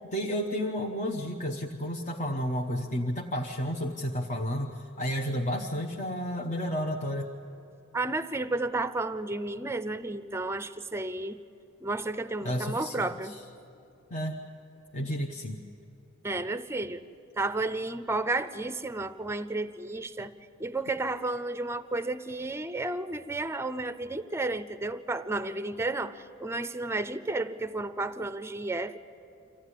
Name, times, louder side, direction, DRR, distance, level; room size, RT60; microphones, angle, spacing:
voice 1, 0.0-7.3 12.4-13.4 14.1-14.4 14.9-15.6, equal, 35° left, 1 dB, 0.9 m, -32 dB
voice 2, 7.9-11.4 11.8-13.3 16.2-17.0 17.4-20.3 20.6-29.0, right 2 dB, 10° right, 12 dB, 0.6 m, -32 dB
25.0 x 15.5 x 10.0 m, 2.9 s
head